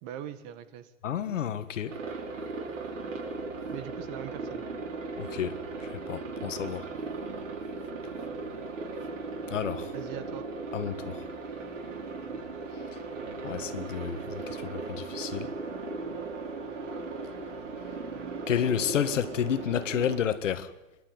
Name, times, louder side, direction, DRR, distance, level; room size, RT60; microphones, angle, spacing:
voice 1, 0.0-0.9 3.7-4.6 9.9-10.4, right 10 dB, 35° right, 1.5 m, -41 dB
voice 2, 1.0-1.9 5.2-5.6 5.8-6.8 9.5-9.9 10.7-11.2 13.4-15.5 18.5-20.7, left 9 dB, 75° left, 1.7 m, -30 dB
Aircraft, 1.9-20.2, right 3 dB, 80° right, 5.6 m, -37 dB
27.0 x 12.0 x 9.5 m
hypercardioid pair, 145°, 38 cm